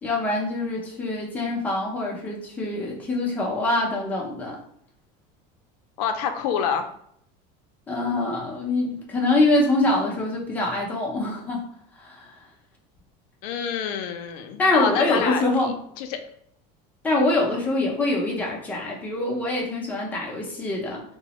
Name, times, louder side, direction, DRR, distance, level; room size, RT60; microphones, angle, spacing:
voice 1, 0.0-4.6 7.9-11.7 12.0-12.4 14.6-15.7 17.0-21.0, left 2 dB, 10° left, -3 dB, 0.4 m, -24 dB
voice 2, 6.0-6.9 13.4-15.4 16.0-16.2, left 7 dB, 80° left, 7 dB, 0.4 m, -27 dB
3.0 x 2.0 x 2.8 m, 0.68 s
cardioid pair, 165°, 20 cm